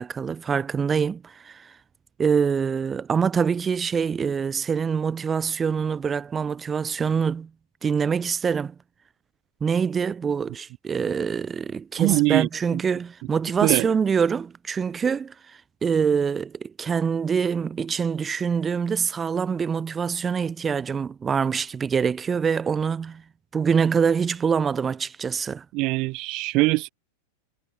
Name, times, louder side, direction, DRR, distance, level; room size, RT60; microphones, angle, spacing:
voice 1, 0.0-1.7 2.2-7.5 7.8-8.7 9.6-15.3 15.8-23.2 23.5-25.6, right 6 dB, 20° right, 2.8 m, -25 dB
voice 2, 12.0-12.8 13.6-13.9 25.7-26.9, right 24 dB, 40° right, 1.5 m, -22 dB
figure-of-eight pair, 90°, 0 cm